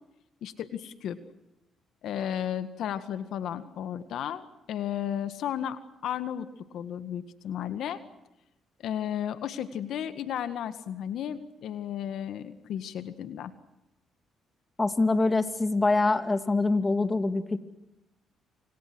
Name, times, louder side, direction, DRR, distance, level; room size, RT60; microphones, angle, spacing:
voice 1, 0.4-1.2 2.0-8.0 8.8-13.5, left 9 dB, 75° left, 11 dB, 1.8 m, -34 dB
voice 2, 14.8-17.6, left 3 dB, 20° left, 9 dB, 2.5 m, -24 dB
28.5 x 27.5 x 6.3 m, 0.92 s
cardioid pair, 90°, 0 cm